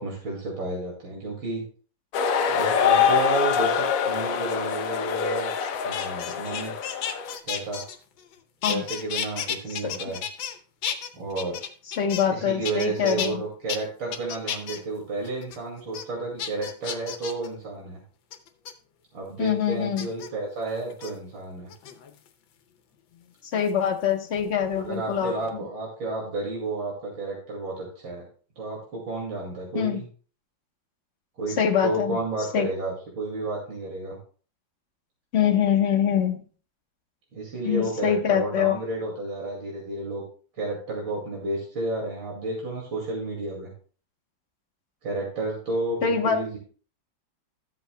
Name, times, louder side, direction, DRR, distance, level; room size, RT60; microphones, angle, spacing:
voice 1, 0.0-1.6 2.5-5.5 5.8-6.7 7.4-7.8 8.7-10.2 11.1-11.6 12.3-18.0 19.1-21.7 24.8-28.2 28.6-30.0 31.4-31.6 31.8-34.2 37.3-40.2 40.6-43.7 45.0-46.6, right 2 dB, 85° right, -2 dB, 3.0 m, -31 dB
sound 1, 2.1-7.4, left 7 dB, 65° left, 0.8 m, -24 dB
sound 2, 5.6-8.3 8.6-10.5 10.8-12.4 12.6-13.3 13.7-13.8 14.1-14.8 15.2-15.6 15.9-16.0 16.4-17.5 18.3-18.7 20.0-20.3 20.9-21.1 21.7-22.3 23.7-24.9 25.1-25.5, left 8 dB, 85° left, 1.6 m, -33 dB
voice 2, 12.0-13.4 19.4-20.1 23.5-25.6 29.7-30.0 31.6-32.2 32.5-32.7 35.3-36.4 37.6-38.8 46.0-46.4, left 8 dB, 40° left, 1 dB, 1.2 m, -24 dB
13.5 x 7.9 x 2.2 m, 0.40 s
omnidirectional pair, 2.1 m